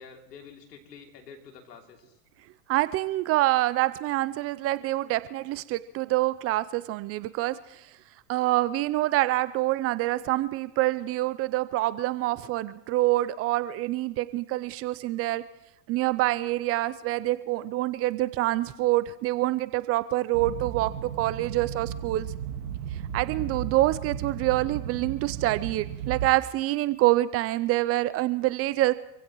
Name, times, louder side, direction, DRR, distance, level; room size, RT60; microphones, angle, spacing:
voice 1, 0.0-2.2, left 6 dB, 80° left, 3 dB, 3.0 m, -48 dB
voice 2, 2.7-7.9 8.3-15.4 15.9-22.3 23.1-28.9, right 17 dB, 30° right, 16 dB, 0.5 m, -26 dB
sound 1, 20.3-26.3, right 9 dB, 70° right, 1.9 m, -35 dB
26.5 x 16.0 x 3.1 m, 0.87 s
hypercardioid pair, 105°, 47 cm